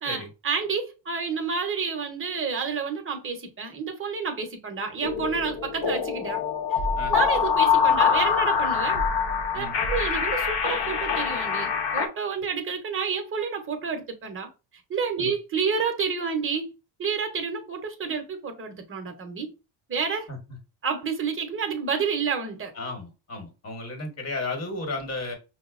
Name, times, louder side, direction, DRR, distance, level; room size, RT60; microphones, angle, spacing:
voice 1, 0.0-6.4 6.7-6.8 7.1-9.0 9.5-14.5 14.9-16.7 17.0-19.5 19.9-20.3 20.8-22.7, right 5 dB, 25° right, 0.8 m, -29 dB
sound 1, 5.0-12.1, left 6 dB, 55° left, 0.8 m, -24 dB
voice 2, 22.7-25.4, left 2 dB, 35° left, 1.2 m, -34 dB
5.3 x 2.1 x 2.4 m
cardioid pair, 130°, 47 cm